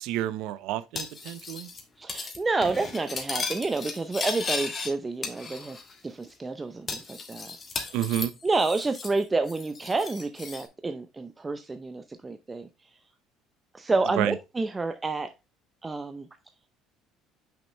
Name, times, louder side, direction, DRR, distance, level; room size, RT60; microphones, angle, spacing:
voice 1, 0.0-1.7 7.9-8.3 14.2-14.3, right 13 dB, 75° right, 0.6 m, -29 dB
Cutlery silverware, 0.9-1.8 2.1-2.4 2.6-4.9 5.2-5.9 6.2-6.3 6.9-9.2 9.5-10.6, left 4 dB, 35° left, 1.6 m, -35 dB
voice 2, 2.0-5.8 6.0-8.1 8.4-12.7 13.7-15.3 15.8-16.3, right 3 dB, 20° right, 0.6 m, -29 dB
5.9 x 5.4 x 3.2 m
supercardioid pair, 85°, 0 cm